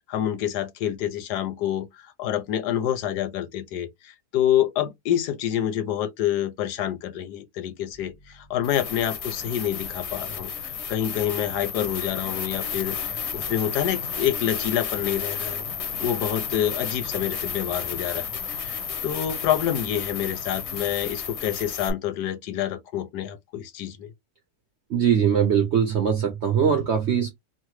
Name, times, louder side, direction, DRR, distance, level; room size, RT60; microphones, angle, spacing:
voice 1, 0.1-15.7 16.0-24.1, left 11 dB, 80° left, 1.2 m, -27 dB
sound 1, 7.9-8.0 8.6-21.9, left 6 dB, 55° left, 0.8 m, -32 dB
voice 2, 24.9-27.3, right 7 dB, 60° right, 0.7 m, -21 dB
3.2 x 2.1 x 3.0 m
omnidirectional pair, 1.8 m